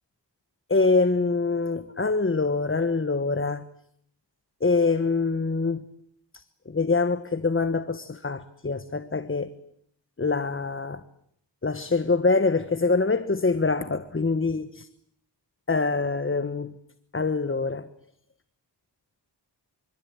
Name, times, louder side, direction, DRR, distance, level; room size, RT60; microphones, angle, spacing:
voice 1, 0.7-3.6 4.6-5.8 6.7-9.5 10.2-11.0 11.6-14.7 15.7-16.7 17.1-17.9, left 3 dB, 30° left, 1.3 m, -24 dB
26.5 x 24.5 x 8.9 m
wide cardioid pair, 95°, 44 cm